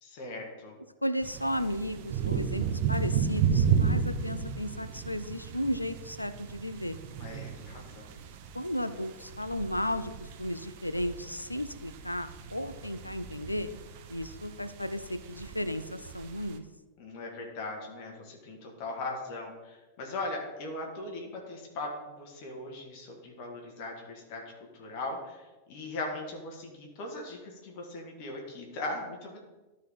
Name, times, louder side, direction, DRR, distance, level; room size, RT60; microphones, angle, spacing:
voice 1, 0.0-0.8 7.2-8.2 17.0-24.4 24.7-29.4, left 2 dB, 45° left, 0 dB, 1.7 m, -39 dB
voice 2, 1.0-7.0 8.5-13.7 14.1-16.6, equal, 85° left, 11 dB, 0.4 m, -34 dB
sound 1, 1.2-16.6, right 7 dB, 50° right, 0.7 m, -33 dB
12.5 x 4.6 x 3.6 m, 1.1 s
figure-of-eight pair, 90°, 0 cm